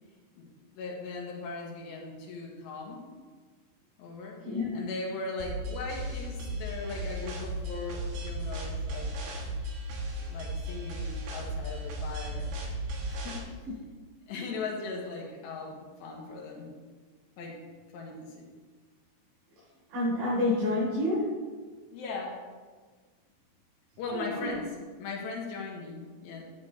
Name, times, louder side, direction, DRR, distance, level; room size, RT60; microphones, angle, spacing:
voice 1, 0.4-3.0 4.0-4.5 4.7-9.1 10.3-12.5 13.1-13.4 14.3-16.7 17.4-17.6 17.9-18.5 21.9-22.4 24.0-26.4, left 3 dB, 75° left, -1 dB, 3.8 m, -39 dB
voice 2, 4.4-4.7 19.9-21.2 24.1-24.5, left 2 dB, 85° right, -8 dB, 6.3 m, -28 dB
sound 1, 5.4-13.4, right 1 dB, 65° right, 3.1 m, -35 dB
12.5 x 10.5 x 3.3 m, 1.4 s
omnidirectional pair, 5.1 m